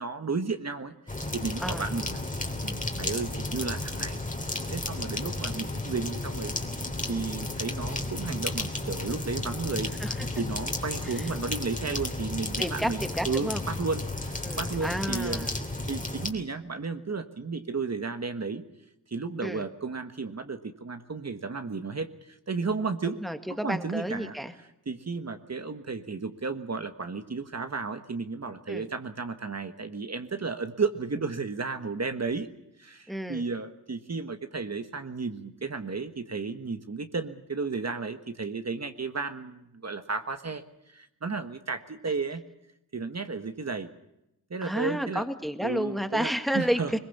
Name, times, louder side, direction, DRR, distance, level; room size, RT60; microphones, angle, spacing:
voice 1, 0.0-2.2 2.6-4.2 4.7-6.6 7.0-9.9 10.4-15.5 15.8-18.6 19.1-23.2 23.6-24.3 24.9-32.5 32.8-42.4 42.9-43.9 44.5-45.2 45.6-46.9, right 4 dB, 45° right, 8 dB, 1.4 m, -33 dB
sound 1, 1.1-16.3, left 2 dB, 20° left, 3.0 m, -33 dB
voice 2, 12.6-13.6 14.4-15.6 19.4-19.6 23.0-24.5 28.7-28.9 33.1-33.5 44.6-47.0, equal, ahead, 8 dB, 1.8 m, -31 dB
22.0 x 21.5 x 7.2 m, 0.86 s
wide cardioid pair, 95°, 37 cm